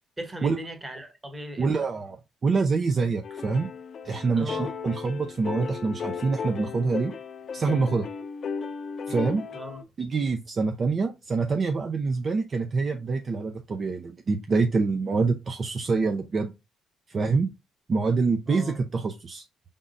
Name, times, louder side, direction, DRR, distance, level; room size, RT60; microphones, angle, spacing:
voice 1, 0.2-1.7 4.3-4.7 9.1-9.2 9.5-9.8 18.5-18.8, equal, 20° right, 1.3 m, -37 dB
voice 2, 1.6-2.2 2.4-3.7 4.0-7.1 7.5-8.1 9.1-9.4 10.0-16.5 17.1-17.5 17.9-19.4, right 4 dB, 45° right, 0.5 m, -26 dB
sound 1, 3.2-9.8, left 6 dB, 55° left, 0.4 m, -35 dB
5.3 x 3.6 x 2.5 m
cardioid pair, 90°, 0 cm